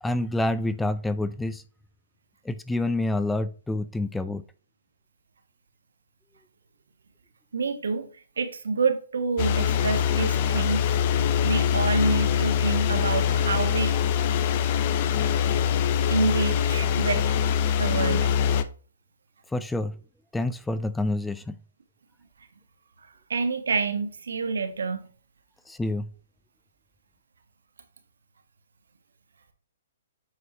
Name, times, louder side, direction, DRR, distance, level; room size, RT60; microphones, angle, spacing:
voice 1, 0.0-1.6 2.4-4.4 19.5-20.0 20.3-21.6 25.7-26.1, left 2 dB, 5° left, 0.3 m, -27 dB
voice 2, 7.5-8.1 8.4-14.0 16.1-17.4 17.8-18.3 23.3-25.1, right 4 dB, 90° right, 1.4 m, -28 dB
sound 1, 9.4-18.6, left 8 dB, 40° left, 0.7 m, -23 dB
8.0 x 4.7 x 2.9 m
hypercardioid pair, 155°, 0 cm